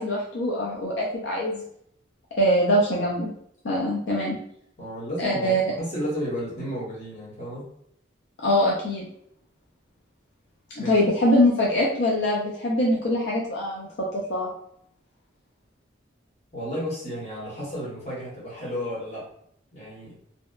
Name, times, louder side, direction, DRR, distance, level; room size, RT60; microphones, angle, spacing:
voice 1, 0.0-1.6 2.4-3.3 3.6-4.4 5.2-5.6 8.4-9.1 10.8-13.9 14.1-14.5, left 1 dB, 70° left, -4 dB, 0.5 m, -23 dB
voice 2, 4.8-7.7 10.8-11.0 16.5-19.3 19.7-20.1, equal, 35° left, -7 dB, 1.1 m, -33 dB
2.7 x 2.1 x 2.3 m, 0.70 s
head